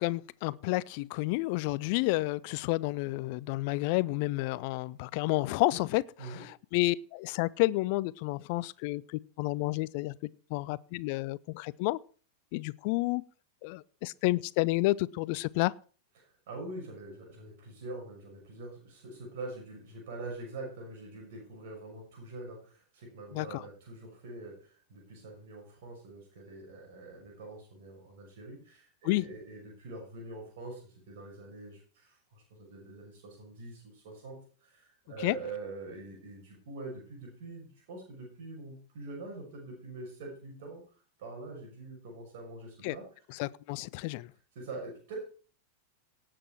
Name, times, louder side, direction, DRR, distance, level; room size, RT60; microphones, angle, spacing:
voice 1, 0.0-10.1 10.5-12.0 12.5-13.2 13.6-15.7 23.3-23.6 29.0-29.2 35.2-35.3 42.8-42.9 43.3-44.3, left 21 dB, 45° left, 0.5 m, -30 dB
voice 2, 16.2-40.8 41.2-43.1 44.5-45.3, right 2 dB, 55° right, 5.9 m, -44 dB
17.5 x 7.7 x 4.6 m
figure-of-eight pair, 90°, 0 cm